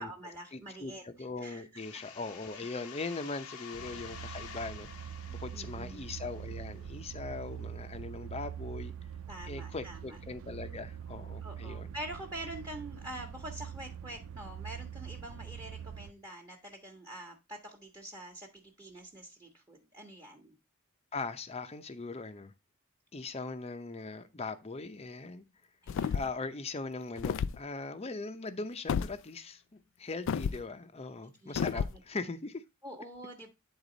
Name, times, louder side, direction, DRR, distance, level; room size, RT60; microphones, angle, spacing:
voice 1, 0.0-1.8 2.5-2.7 5.5-6.0 9.3-10.2 11.4-20.6 25.8-26.3 31.2-32.0 32.8-33.5, right 1 dB, 20° right, 1.3 m, -46 dB
voice 2, 0.5-4.9 5.3-8.9 9.4-11.9 21.1-22.5 23.1-25.4 26.1-29.6 30.0-32.6, left 3 dB, 30° left, 0.7 m, -40 dB
sound 1, 1.8-7.3, left 7 dB, 85° left, 0.9 m, -49 dB
sound 2, 3.7-16.1, right 8 dB, 65° right, 0.5 m, -44 dB
sound 3, 25.9-26.4 27.2-27.6 28.9-29.1 30.3-30.6 31.6-32.0, left 7 dB, 60° left, 0.3 m, -31 dB
9.8 x 4.1 x 3.9 m
head